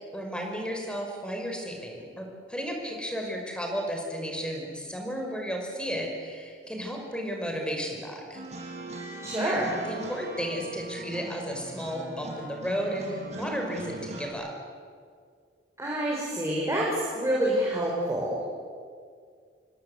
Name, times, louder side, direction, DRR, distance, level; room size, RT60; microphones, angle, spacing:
voice 1, 0.1-8.4 9.4-14.5, equal, 5° left, 1 dB, 5.5 m, -33 dB
sound 1, 8.3-14.3, right 1 dB, 40° right, 6.2 m, -40 dB
voice 2, 9.2-9.7 15.8-18.4, right 1 dB, 15° right, -3 dB, 5.1 m, -27 dB
28.5 x 23.0 x 8.2 m, 2.1 s
head